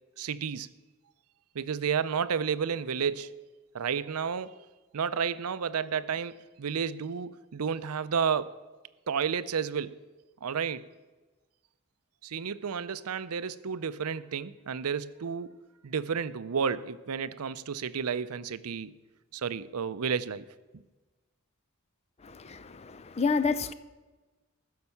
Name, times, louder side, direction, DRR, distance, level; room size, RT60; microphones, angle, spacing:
voice 1, 0.2-0.7 1.5-3.5 3.7-4.7 4.9-8.5 9.1-10.0 10.4-10.8 12.2-15.5 15.8-18.9 19.3-20.4 20.7-20.8, right 6 dB, 85° right, 0.5 m, -31 dB
voice 2, 22.2-23.7, left 4 dB, 30° left, 0.5 m, -29 dB
15.5 x 6.6 x 7.0 m
head